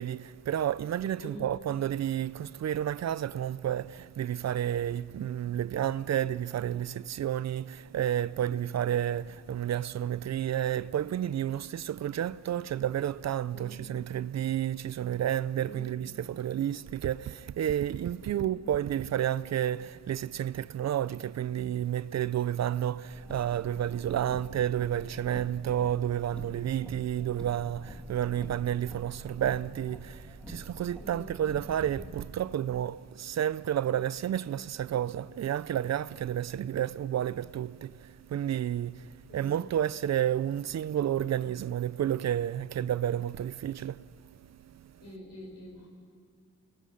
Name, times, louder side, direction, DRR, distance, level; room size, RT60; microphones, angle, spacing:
voice 1, 0.0-44.4 44.6-44.9, right 10 dB, 60° right, 0.5 m, -31 dB
voice 2, 1.2-1.5 13.5-13.9 15.6-16.1 18.2-18.5 31.0-31.4 39.3-39.6 45.0-45.9, equal, 55° left, 6.0 m, -46 dB
Car, 23.1-32.1, equal, 5° left, 1.9 m, -46 dB
25.5 x 20.5 x 6.5 m
wide cardioid pair, 150°, 31 cm